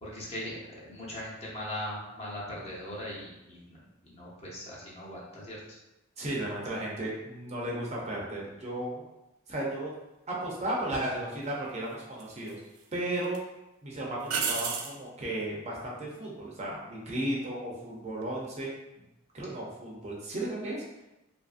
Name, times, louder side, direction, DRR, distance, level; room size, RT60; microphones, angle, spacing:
voice 1, 0.0-5.6, left 1 dB, 30° left, -6 dB, 0.7 m, -40 dB
voice 2, 6.2-9.0 9.5-9.9 10.3-12.6 12.9-13.4 13.8-18.7 19.3-20.8, right 1 dB, 30° right, -4 dB, 0.5 m, -34 dB
sound 1, 10.9-11.1 12.2-12.8 13.2-13.4 14.3-15.0 18.1-18.5, right 5 dB, 85° right, 0.4 m, -32 dB
2.7 x 2.5 x 2.4 m, 0.94 s
head